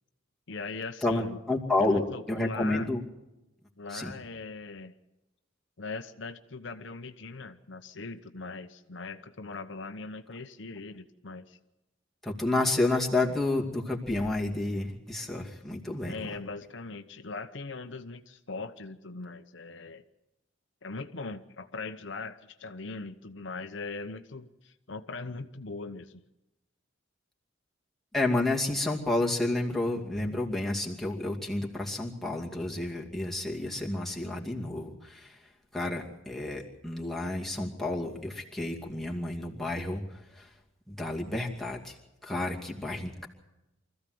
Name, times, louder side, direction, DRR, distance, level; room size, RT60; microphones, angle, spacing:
voice 1, 0.5-1.4 1.8-2.9 3.8-5.0 5.8-11.6 16.1-20.0 20.8-26.3, left 3 dB, 65° left, 8 dB, 0.9 m, -40 dB
voice 2, 1.0-3.0 3.9-4.1 12.2-16.2 28.1-35.4 35.7-40.0 40.4-40.5 40.9-41.9 42.2-43.3, left 2 dB, ahead, -2 dB, 2.4 m, -30 dB
24.5 x 14.5 x 7.8 m, 0.97 s
head